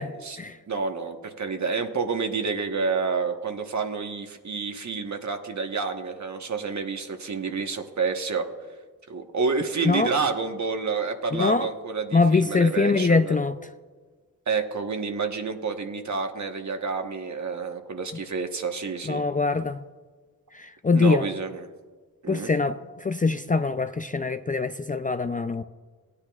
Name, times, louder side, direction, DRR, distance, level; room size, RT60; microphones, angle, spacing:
voice 1, 0.7-8.5 9.1-13.4 14.5-19.2 20.9-21.7 22.2-22.5, right 4 dB, 50° right, 5 dB, 1.2 m, -29 dB
voice 2, 11.3-11.7 12.1-13.6 19.1-19.8 20.5-21.2 22.3-25.6, left 4 dB, 25° left, 9 dB, 0.4 m, -23 dB
17.0 x 9.8 x 2.4 m, 1.4 s
cardioid pair, 60°, 37 cm